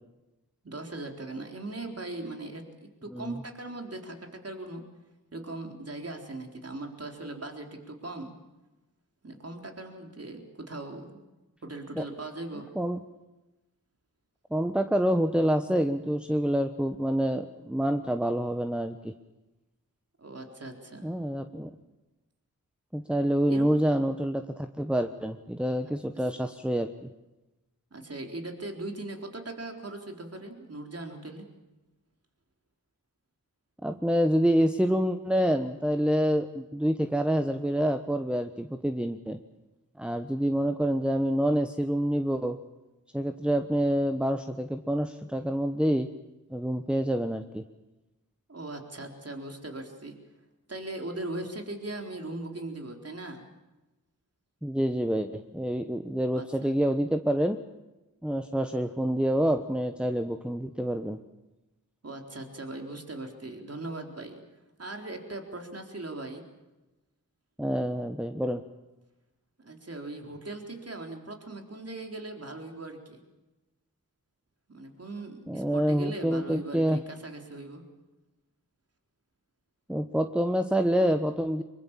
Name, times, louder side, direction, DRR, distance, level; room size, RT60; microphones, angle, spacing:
voice 1, 0.6-4.9 5.3-8.4 9.2-11.2 11.6-12.7 20.2-21.1 23.5-23.7 26.3-26.4 27.9-31.5 48.5-50.2 50.7-53.5 56.3-56.7 62.0-64.4 64.8-66.5 69.6-73.2 74.7-77.9, right 2 dB, 40° right, 3 dB, 4.0 m, -39 dB
voice 2, 14.5-19.1 21.0-21.7 22.9-27.1 33.8-39.4 40.0-42.6 43.1-46.1 46.5-47.6 54.6-57.6 58.2-61.2 67.6-68.6 75.5-77.0 79.9-81.6, equal, 5° right, 7 dB, 1.2 m, -27 dB
23.0 x 22.0 x 7.4 m, 1.1 s
cardioid pair, 45°, 36 cm